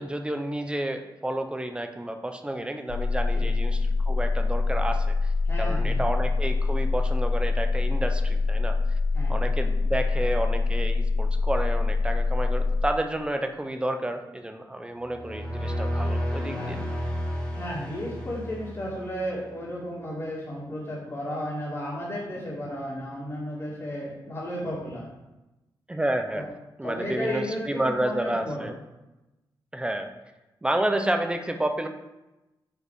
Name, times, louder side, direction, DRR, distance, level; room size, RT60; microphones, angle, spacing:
voice 1, 0.0-5.3 5.6-8.8 9.3-16.8 25.9-26.5 26.8-28.7 29.7-30.1 30.6-31.9, right 1 dB, 10° right, 6 dB, 0.7 m, -30 dB
sound 1, 2.9-12.9, left 3 dB, 80° left, 0.6 m, -25 dB
voice 2, 5.4-6.0 9.1-9.4 16.5-16.8 17.5-25.1 26.3-26.4 26.8-28.7, equal, 30° left, -10 dB, 2.5 m, -33 dB
sound 2, 15.0-19.3, equal, 10° left, 2.7 m, -31 dB
9.0 x 4.8 x 5.1 m, 1.0 s
wide cardioid pair, 115°, 8 cm